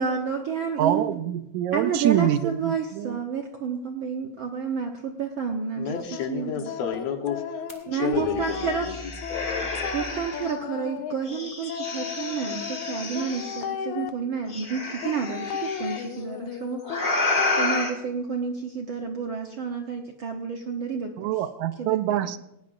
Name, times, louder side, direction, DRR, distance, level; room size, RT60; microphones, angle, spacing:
voice 1, 0.0-1.2 1.7-5.9 6.3-6.7 7.9-8.9 9.9-16.8 17.6-21.3 21.8-22.2, right 6 dB, 65° right, 2 dB, 1.3 m, -30 dB
voice 2, 0.8-3.2 21.2-22.4, right 11 dB, 80° right, 11 dB, 2.0 m, -25 dB
voice 3, 5.8-7.7 7.9-9.0 9.3-9.9, left 7 dB, 65° left, 4 dB, 2.3 m, -31 dB
sound 1, 5.9-14.1 15.0-17.8, left 8 dB, 90° left, 2.3 m, -35 dB
sound 2, 7.7-7.8 8.1-10.5 11.2-13.6 14.5-16.0 16.8-17.9, left 2 dB, 25° left, 1.3 m, -31 dB
18.5 x 18.0 x 2.6 m, 0.85 s
omnidirectional pair, 3.3 m